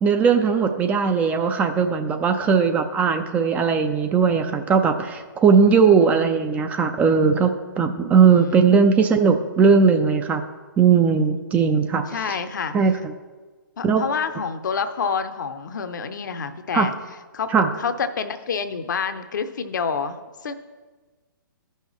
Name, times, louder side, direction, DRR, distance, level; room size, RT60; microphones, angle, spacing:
voice 1, 0.0-10.4 10.8-12.4 12.7-12.9 13.8-14.0 16.7-16.9 17.5-17.7, right 5 dB, 15° right, 7 dB, 0.4 m, -18 dB
voice 2, 5.8-6.2 8.3-8.6 12.1-12.8 13.8-16.9 17.3-17.5 17.8-20.2 20.4-20.5, left 6 dB, 60° left, 9 dB, 0.7 m, -28 dB
14.5 x 5.6 x 3.1 m, 1.3 s
figure-of-eight pair, 130°, 11 cm